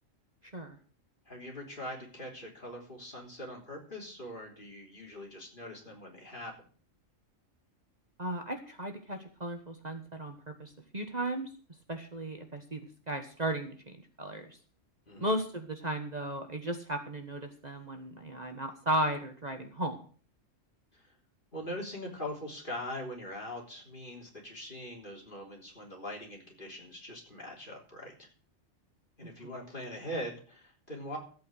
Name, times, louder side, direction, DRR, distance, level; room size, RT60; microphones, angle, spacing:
voice 1, 1.3-6.5 15.1-15.3 20.9-21.1 21.5-28.3 29.2-31.2, left 1 dB, 40° left, -1 dB, 3.9 m, -42 dB
voice 2, 8.2-11.5 11.9-14.6 15.2-20.0 29.4-29.5, right 1 dB, 35° right, 5 dB, 1.5 m, -35 dB
14.5 x 8.5 x 6.4 m, 0.43 s
omnidirectional pair, 1.3 m